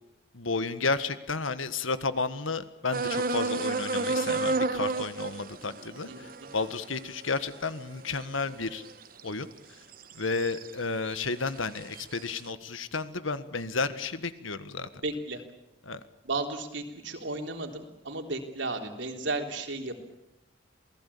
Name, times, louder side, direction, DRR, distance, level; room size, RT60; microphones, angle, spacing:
voice 1, 0.3-8.8 9.2-9.5 10.1-14.9 15.8-16.0, left 4 dB, 90° left, 12 dB, 1.6 m, -32 dB
sound 1, 2.9-9.3 9.9-10.7 11.1-12.2, right 3 dB, 45° right, 1.2 m, -32 dB
voice 2, 6.1-6.5 14.9-15.4 16.2-20.0, right 2 dB, 70° right, 4 dB, 3.6 m, -34 dB
28.0 x 19.0 x 8.6 m, 0.84 s
head